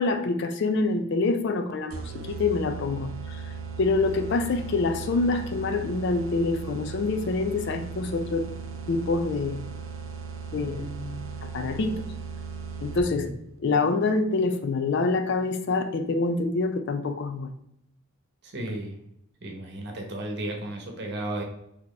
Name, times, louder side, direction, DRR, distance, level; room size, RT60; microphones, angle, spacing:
voice 1, 0.0-3.5 3.8-8.5 8.9-9.6 10.5-10.8 11.4-12.0 12.8-13.3 13.6-17.5, left 3 dB, 55° left, 8 dB, 0.4 m, -26 dB
sound 1, 1.9-13.3, right 5 dB, 75° right, 0.5 m, -37 dB
voice 2, 10.5-11.2 13.2-13.4 18.4-18.9 19.4-21.4, right 1 dB, 55° right, 1 dB, 0.9 m, -34 dB
4.1 x 2.9 x 3.2 m, 0.77 s
head